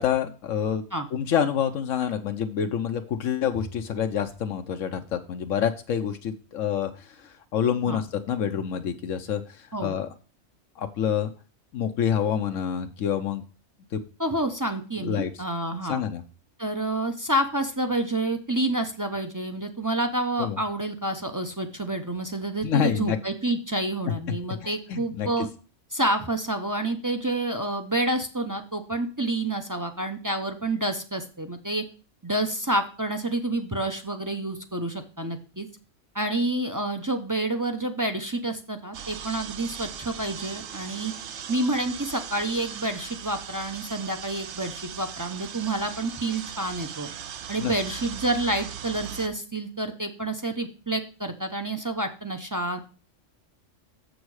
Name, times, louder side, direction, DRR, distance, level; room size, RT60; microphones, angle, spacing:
voice 1, 0.0-0.8 1.1-10.1 10.8-11.3 11.7-13.4 13.9-14.0 15.0-15.3 15.7-16.2 20.4-20.6 22.6-23.2 24.6-25.3 47.6-47.7, left 8 dB, 80° left, 6 dB, 1.1 m, -27 dB
Bowed string instrument, 3.5-6.1, right 2 dB, 85° right, 3.0 m, -47 dB
voice 2, 14.2-16.0 16.6-25.5 25.9-31.8 32.2-35.7 36.1-41.1 41.5-47.1 47.5-52.8, right 1 dB, 20° right, 4 dB, 0.5 m, -28 dB
sound 1, 38.9-49.3, right 9 dB, 65° right, 0.9 m, -39 dB
7.1 x 6.4 x 4.7 m, 0.36 s
omnidirectional pair, 1.3 m